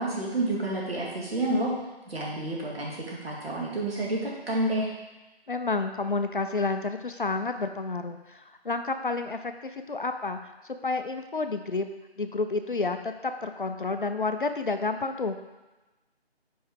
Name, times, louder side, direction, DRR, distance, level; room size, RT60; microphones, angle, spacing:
voice 1, 0.0-1.7 2.1-4.9, right 1 dB, 65° right, -4 dB, 2.2 m, -29 dB
voice 2, 5.5-10.4 10.8-11.9 12.2-15.4, left 3 dB, 50° left, 7 dB, 0.5 m, -30 dB
5.5 x 4.7 x 4.7 m, 1.1 s
figure-of-eight pair, 165°, 33 cm